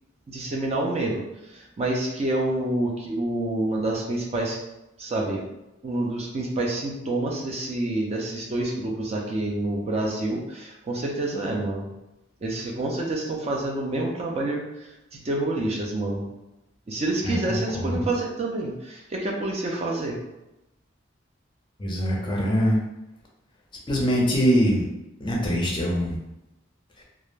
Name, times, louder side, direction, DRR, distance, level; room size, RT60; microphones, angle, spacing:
voice 1, 0.3-4.6 5.0-5.4 5.8-11.9 12.4-14.9 15.2-16.2 16.9-20.2, right 2 dB, 30° right, -1 dB, 0.4 m, -28 dB
voice 2, 17.2-18.0 21.8-22.8 23.9-24.8 25.2-26.2, equal, 25° left, -2 dB, 0.5 m, -23 dB
2.3 x 2.1 x 3.1 m, 0.92 s
head